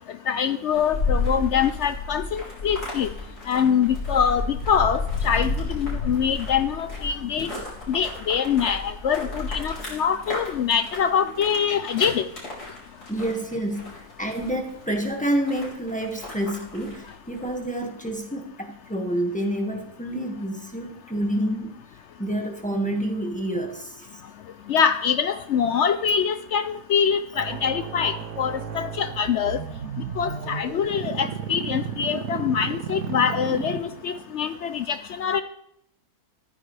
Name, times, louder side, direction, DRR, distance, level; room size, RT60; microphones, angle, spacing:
voice 1, 0.3-3.1 3.5-7.5 7.9-12.3 24.7-29.6 30.2-35.4, left 7 dB, 65° left, 11 dB, 0.7 m, -24 dB
sound 1, 0.7-17.6, left 3 dB, 85° left, 4.4 m, -32 dB
voice 2, 13.1-21.8 22.2-24.2, right 1 dB, 5° left, 2 dB, 1.6 m, -28 dB
sound 2, 27.4-34.3, right 7 dB, 80° right, 1.6 m, -33 dB
14.0 x 13.5 x 3.4 m, 0.74 s
omnidirectional pair, 1.6 m